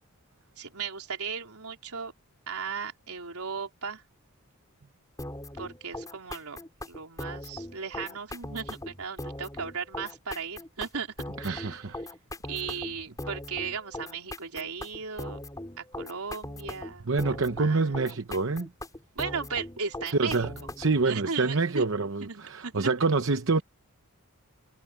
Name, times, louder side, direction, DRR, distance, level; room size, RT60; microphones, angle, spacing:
voice 1, 0.6-2.1 2.5-4.0 5.6-6.6 6.9-11.1 11.4-12.1 12.5-15.4 15.8-18.1 19.2-20.5 21.0-21.9 22.2-22.9, right 5 dB, 80° right, 3.9 m, -36 dB
sound 1, 5.2-21.0, left 1 dB, 15° left, 4.9 m, -40 dB
voice 2, 11.4-12.0 17.1-18.7 20.2-23.6, right 3 dB, 60° right, 0.9 m, -27 dB
head